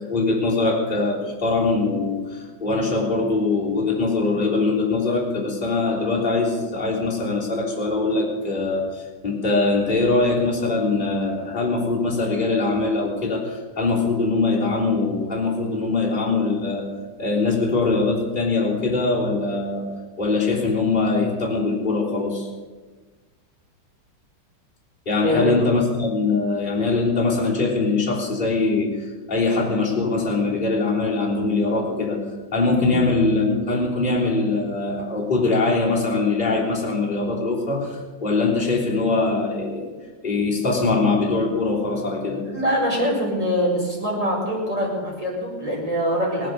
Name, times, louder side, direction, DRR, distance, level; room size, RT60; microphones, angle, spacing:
voice 1, 0.0-16.9 17.2-19.9 20.2-22.5 25.1-32.2 32.5-39.9 40.2-42.4, left 3 dB, 25° left, -5 dB, 3.6 m, -22 dB
voice 2, 25.2-25.6 32.8-33.0 40.7-40.9 42.4-46.5, equal, 20° right, -3 dB, 5.0 m, -24 dB
18.5 x 11.0 x 6.8 m, 1.3 s
omnidirectional pair, 2.0 m